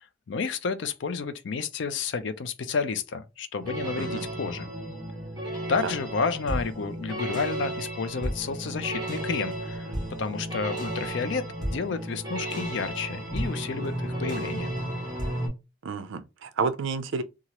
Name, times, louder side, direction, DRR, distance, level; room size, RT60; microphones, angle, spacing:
voice 1, 0.3-4.7 5.7-9.9 10.2-14.7, left 5 dB, 65° left, 0.4 m, -31 dB
sound 1, 3.6-15.5, right 1 dB, 20° right, 1.4 m, -33 dB
voice 2, 15.8-17.2, right 4 dB, 75° right, 0.4 m, -30 dB
2.9 x 2.4 x 2.8 m
head